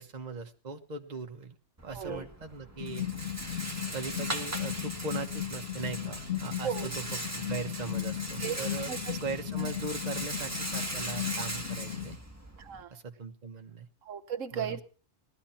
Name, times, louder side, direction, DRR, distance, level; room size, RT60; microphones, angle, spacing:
voice 1, 0.0-1.5 1.8-3.1 3.9-7.0 7.4-12.2 12.9-13.9 14.5-14.8, right 4 dB, 35° right, 4 dB, 1.3 m, -39 dB
Rattle, 1.8-12.8, right 1 dB, 15° right, 1.5 m, -39 dB
sound 1, 2.8-12.2, left 10 dB, 60° left, 1.8 m, -36 dB
voice 2, 8.9-9.2 9.6-9.7 12.6-12.9 14.0-14.8, right 8 dB, 85° right, 7 dB, 1.4 m, -36 dB
18.5 x 12.5 x 4.3 m, 0.37 s
omnidirectional pair, 1.3 m